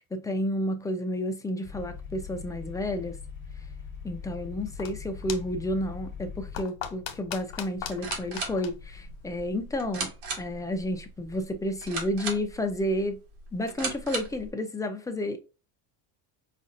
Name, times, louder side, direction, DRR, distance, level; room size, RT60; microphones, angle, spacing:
voice 1, 0.1-3.2 4.0-10.1 10.4-13.2 13.5-15.4, left 1 dB, 10° left, 0.3 m, -31 dB
sound 1, 1.6-6.6, left 6 dB, 25° left, 1.1 m, -41 dB
sound 2, 4.5-9.8, left 9 dB, 80° left, 1.0 m, -41 dB
sound 3, 7.8-14.5, right 3 dB, 80° right, 1.7 m, -38 dB
5.1 x 2.4 x 2.5 m
supercardioid pair, 110°, 49 cm